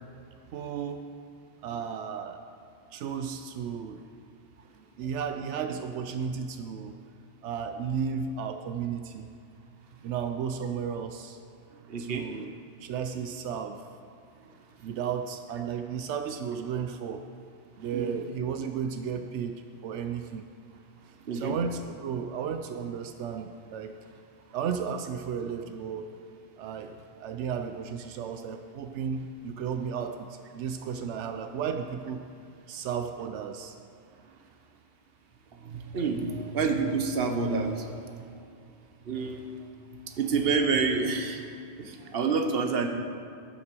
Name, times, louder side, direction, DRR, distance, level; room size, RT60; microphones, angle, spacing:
voice 1, 0.5-1.0 1.6-2.4 2.9-4.0 5.0-6.9 7.4-9.3 10.0-11.4 12.0-12.5 12.8-13.8 14.8-17.2 17.8-20.4 21.3-23.9 24.5-26.1 26.6-32.2 32.7-33.7, right 7 dB, 85° right, 7 dB, 0.9 m, -34 dB
voice 2, 11.9-12.4 17.9-18.2 21.2-21.6 35.6-38.1 39.0-39.7 40.1-41.4 41.8-42.9, right 4 dB, 60° right, 5 dB, 1.1 m, -28 dB
11.5 x 5.7 x 6.8 m, 2.4 s
omnidirectional pair, 1.2 m